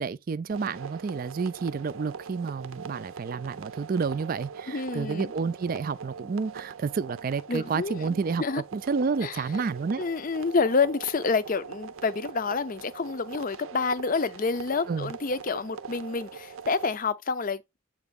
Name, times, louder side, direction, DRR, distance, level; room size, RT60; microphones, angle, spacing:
voice 1, 0.0-8.4 8.7-10.0 14.9-15.1, right 5 dB, 45° right, 0.4 m, -30 dB
sound 1, 0.5-17.0, right 6 dB, 90° right, 0.6 m, -42 dB
voice 2, 4.7-5.3 7.5-8.6 9.2-9.4 10.0-17.8, left 4 dB, 40° left, 0.5 m, -28 dB
7.8 x 3.5 x 4.0 m
head